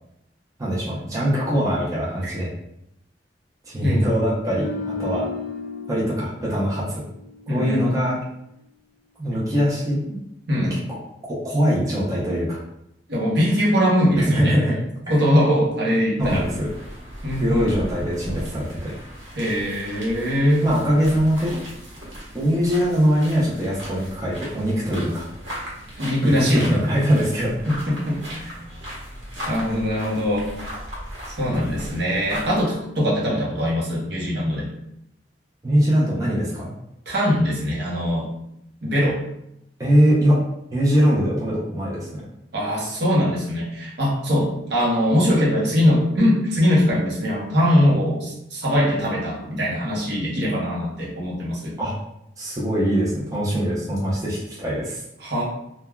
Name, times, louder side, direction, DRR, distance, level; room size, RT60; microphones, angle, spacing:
voice 1, 0.6-2.5 3.6-5.3 5.9-7.0 7.5-8.2 9.2-10.2 10.7-10.8 11.3-12.6 14.2-14.7 15.1-15.2 16.2-16.7 17.4-18.9 20.6-21.6 22.3-25.2 26.2-27.5 35.6-36.7 39.8-40.4 40.7-42.2 51.8-51.9 52.4-55.0, equal, 20° right, -7 dB, 0.6 m, -22 dB
voice 2, 3.8-4.2 7.5-7.9 10.5-10.8 13.1-14.6 15.1-16.5 17.2-17.7 19.4-20.6 26.0-26.8 27.7-28.6 29.5-30.5 31.4-34.7 37.1-38.3 38.8-39.2 42.5-51.8 55.2-55.4, equal, 65° right, -5 dB, 0.8 m, -21 dB
sound 1, 4.6-7.8 8.1-8.4, left 4 dB, 55° left, 0.5 m, -34 dB
sound 2, 16.2-32.6, equal, 85° right, 1.0 m, -37 dB
3.3 x 2.2 x 2.2 m, 0.80 s
head